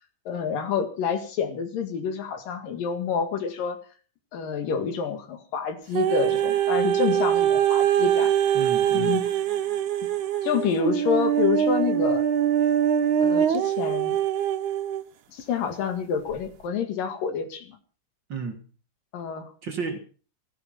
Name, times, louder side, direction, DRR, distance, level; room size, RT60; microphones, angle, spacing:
voice 1, 0.3-3.8 4.3-8.3 8.9-9.2 10.4-12.3 13.2-14.2 15.3-17.8 19.1-19.5, left 6 dB, 85° left, 3.7 m, -28 dB
sound 1, 5.9-15.0 15.7-15.8, right 9 dB, 70° right, 2.3 m, -23 dB
voice 2, 8.5-9.2 18.3-18.6 19.6-20.0, right 5 dB, 45° right, 1.8 m, -32 dB
16.0 x 13.0 x 5.8 m
omnidirectional pair, 3.8 m